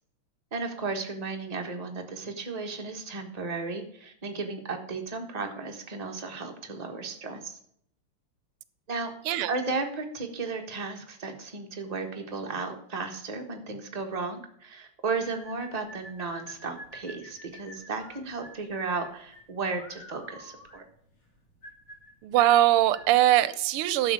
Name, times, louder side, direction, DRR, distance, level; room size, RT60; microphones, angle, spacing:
voice 1, 0.5-7.6 8.9-9.1 9.5-20.8, right 4 dB, 20° right, 3 dB, 1.2 m, -34 dB
sound 1, 15.2-23.2, equal, 35° left, 2.2 m, -48 dB
voice 2, 22.2-24.1, right 13 dB, 85° right, 16 dB, 1.5 m, -21 dB
11.5 x 6.7 x 4.9 m, 0.66 s
omnidirectional pair, 2.4 m